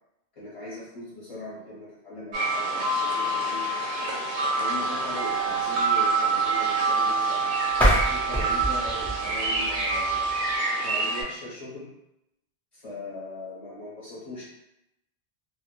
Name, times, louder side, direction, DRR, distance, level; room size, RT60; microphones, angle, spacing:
voice 1, 0.3-3.7 4.6-7.5 8.0-10.3 10.8-11.9 12.7-14.4, left 2 dB, 40° left, -9 dB, 0.6 m, -39 dB
sound 1, 2.3-11.2, right 3 dB, 60° right, 0.5 m, -26 dB
sound 2, 7.7-10.6, equal, 5° left, 0.4 m, -27 dB
2.1 x 2.0 x 2.9 m, 0.88 s
omnidirectional pair, 1.2 m